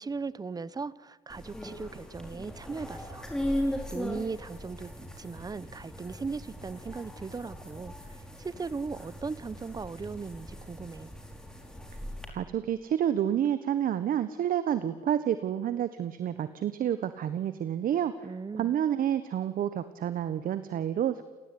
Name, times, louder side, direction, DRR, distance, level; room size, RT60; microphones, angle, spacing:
voice 1, 0.0-3.2 3.9-7.9 8.4-11.1 18.2-18.7, right 4 dB, 20° right, 19 dB, 1.0 m, -38 dB
sound 1, 1.3-12.3, equal, 5° left, 5.2 m, -38 dB
voice 2, 12.3-18.1 18.5-21.2, right 10 dB, 55° right, 12 dB, 1.4 m, -29 dB
29.5 x 18.0 x 10.0 m, 1.3 s
cardioid pair, 110°, 17 cm